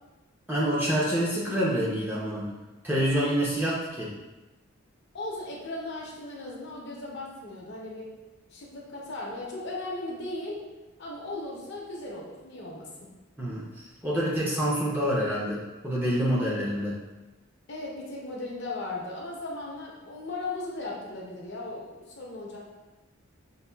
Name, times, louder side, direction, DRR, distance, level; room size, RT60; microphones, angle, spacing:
voice 1, 0.5-2.5 2.8-4.1 13.4-13.7 14.0-16.9, equal, 10° right, -6 dB, 0.5 m, -27 dB
voice 2, 5.1-8.1 8.5-10.6 11.0-13.1 17.7-22.6, left 2 dB, 50° left, -3 dB, 0.7 m, -37 dB
5.4 x 2.3 x 2.2 m, 1.1 s
head